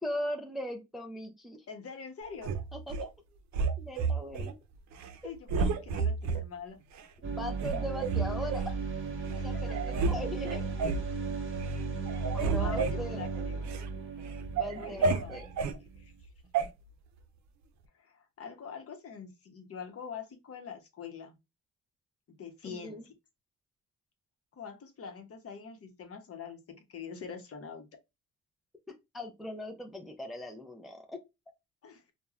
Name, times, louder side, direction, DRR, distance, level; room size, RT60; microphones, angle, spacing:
voice 1, 0.0-1.6 2.7-3.1 3.8-4.6 5.6-5.7 7.3-8.7 9.4-10.7 12.3-13.2 14.6-15.4 22.6-23.0 29.1-31.2, left 1 dB, ahead, 0.5 m, -39 dB
voice 2, 1.7-2.5 5.2-6.8 9.3-9.8 12.5-13.7 14.8-16.1 18.0-21.4 22.4-23.1 24.5-26.6 26.9-27.8 31.8-32.1, left 6 dB, 50° left, 0.9 m, -44 dB
sound 1, 2.4-3.1 3.5-4.5 4.9-5.2 5.5-6.4 7.0-7.1 7.6-8.7 9.3-9.4 9.7-10.2 10.4-11.1 11.5-11.8 12.1-13.9 14.3-15.8 16.5-16.7, right 4 dB, 65° right, 0.5 m, -31 dB
sound 2, 7.2-16.0, right 4 dB, 45° right, 1.0 m, -35 dB
2.9 x 2.2 x 2.4 m
cardioid pair, 90°, 30 cm